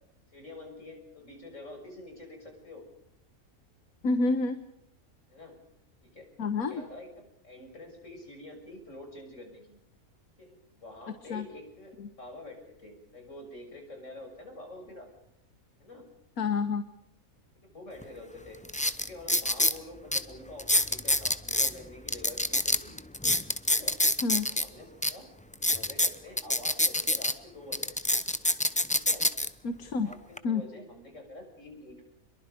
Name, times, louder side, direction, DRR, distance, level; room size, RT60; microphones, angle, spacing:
voice 1, 0.3-2.8 5.3-5.6 6.0-6.3 6.6-9.8 10.4-15.1 15.8-16.1 17.6-18.6 19.0-23.0 23.6-24.0 24.6-25.3 25.6-28.2 28.9-29.2 30.0-32.0, left 1 dB, 55° left, 3 dB, 6.9 m, -47 dB
voice 2, 4.0-4.6 6.4-6.8 11.3-11.5 12.0-12.1 16.4-16.8 24.2-24.5 29.6-30.1 30.4-30.6, left 4 dB, 75° left, 9 dB, 1.7 m, -28 dB
sound 1, 18.0-18.1 18.6-19.8 20.1-20.2 20.6-21.7 22.1-24.6 25.0-25.1 25.5-27.3 27.7-29.5 30.1-30.4, left 1 dB, 5° left, 0.6 m, -26 dB
27.5 x 22.5 x 5.2 m, 0.76 s
omnidirectional pair, 1.5 m